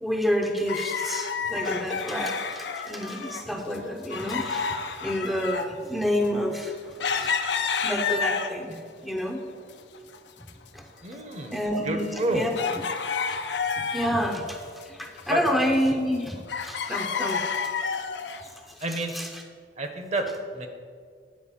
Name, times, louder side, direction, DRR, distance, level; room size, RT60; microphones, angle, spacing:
voice 1, 0.0-6.7 7.2-7.3 7.8-9.4 10.7-10.8 11.5-12.0 12.3-12.5 13.9-17.4 18.7-19.4, equal, ahead, 1 dB, 0.6 m, -29 dB
sound 1, 0.7-3.5 3.7-8.8 9.3-10.2 10.4-10.5 11.1-14.3 14.7-16.2 16.5-18.5 19.1-19.2, left 5 dB, 75° left, 0.6 m, -30 dB
voice 2, 11.0-12.5 15.3-15.4 18.8-19.2 19.8-20.7, right 1 dB, 40° right, 6 dB, 0.9 m, -29 dB
9.5 x 4.5 x 7.2 m, 2.1 s
head